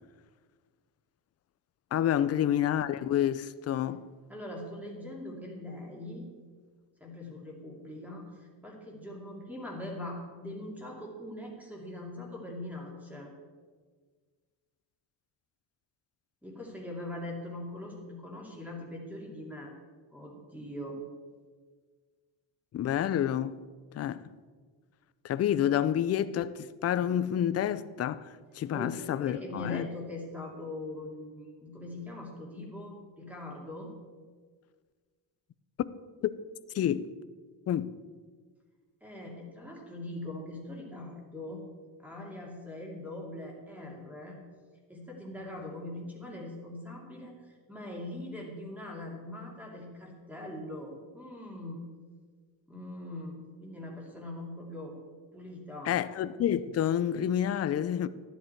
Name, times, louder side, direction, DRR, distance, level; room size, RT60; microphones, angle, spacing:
voice 1, 1.9-4.0 22.7-23.5 23.9-24.2 25.2-29.9 35.8-35.9 36.2-36.3 36.7-37.1 37.7-37.9 55.9-58.1, left 10 dB, 35° left, 0.4 m, -29 dB
voice 2, 4.3-6.3 7.0-13.3 16.4-19.7 20.1-21.0 28.7-33.9 39.0-41.6 42.0-44.4 44.9-51.8 52.7-55.0 55.3-56.0, left 1 dB, 5° right, 2.6 m, -42 dB
12.5 x 10.5 x 4.5 m
cardioid pair, 145°, 45 cm